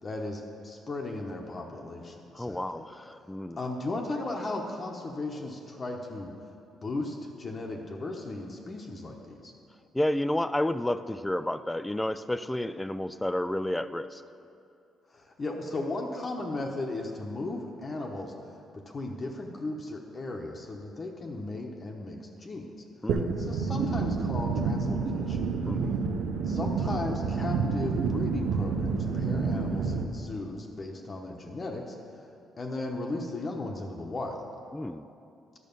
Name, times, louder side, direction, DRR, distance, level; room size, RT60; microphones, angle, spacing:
voice 1, 0.0-2.8 3.2-6.3 6.8-9.5 15.1-18.3 18.7-22.7 23.4-25.4 26.5-31.9 32.6-34.4, left 2 dB, 35° left, 0 dB, 0.9 m, -36 dB
voice 2, 2.3-3.6 9.9-14.2 23.0-23.3 25.7-26.0 34.7-35.1, left 1 dB, 10° left, 13 dB, 0.3 m, -31 dB
sound 1, 23.1-30.0, right 5 dB, 85° right, 0.7 m, -29 dB
11.0 x 6.3 x 5.3 m, 2.6 s
cardioid pair, 90°, 0 cm